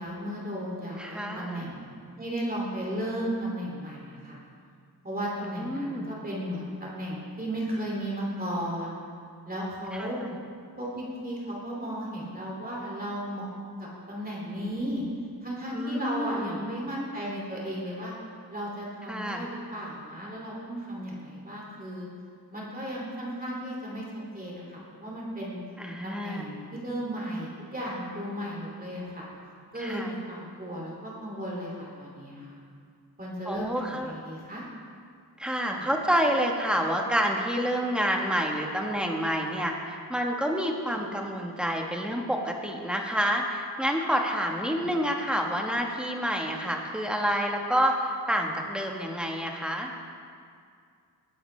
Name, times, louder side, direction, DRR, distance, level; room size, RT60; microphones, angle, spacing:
voice 1, 0.0-1.9 2.2-4.4 5.0-9.0 9.5-10.2 10.8-13.5 13.8-15.0 15.4-18.1 18.5-22.1 22.5-24.0 24.3-25.6 26.0-29.2 29.7-32.6 33.2-34.6 35.7-35.9 44.7-44.9, equal, 25° right, -5 dB, 2.5 m, -35 dB
voice 2, 1.0-1.7 5.4-6.1 9.9-10.3 15.7-16.6 19.1-19.5 25.8-26.4 29.8-30.1 33.4-34.1 35.4-49.9, equal, ahead, 1 dB, 1.2 m, -28 dB
19.5 x 11.0 x 3.2 m, 2.2 s
wide cardioid pair, 150°, 38 cm